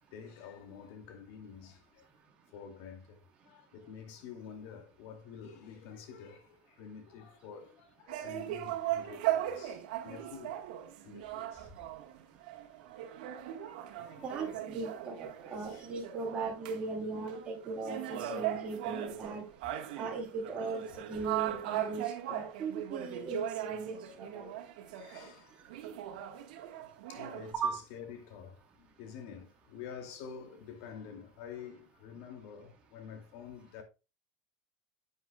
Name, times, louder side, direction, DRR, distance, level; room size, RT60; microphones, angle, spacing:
voice 1, 0.1-2.1 2.5-3.2 3.5-10.6 11.0-11.7 13.7-14.6 15.5-15.9 20.9-21.0 24.7-25.7 27.1-33.8, left 7 dB, 65° left, 2.4 m, -49 dB
sound 1, 8.1-16.9 17.1-25.3 25.7-27.5, right 12 dB, 85° right, 1.5 m, -38 dB
voice 2, 14.2-19.4 19.9-24.5 27.5-27.8, right 4 dB, 25° right, 3.1 m, -38 dB
10.0 x 8.1 x 2.3 m
supercardioid pair, 140°, 4 cm